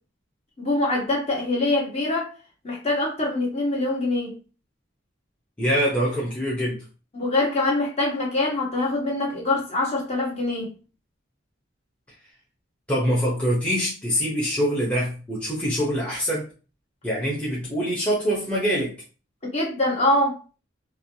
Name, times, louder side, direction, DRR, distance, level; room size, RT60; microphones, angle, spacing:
voice 1, 0.6-2.3 2.6-4.3 7.1-10.7 19.5-20.4, left 2 dB, 30° left, 1.0 m, -24 dB
voice 2, 5.6-6.8 12.9-16.5 17.0-18.9, equal, 5° left, 0.7 m, -24 dB
3.2 x 2.3 x 2.7 m
head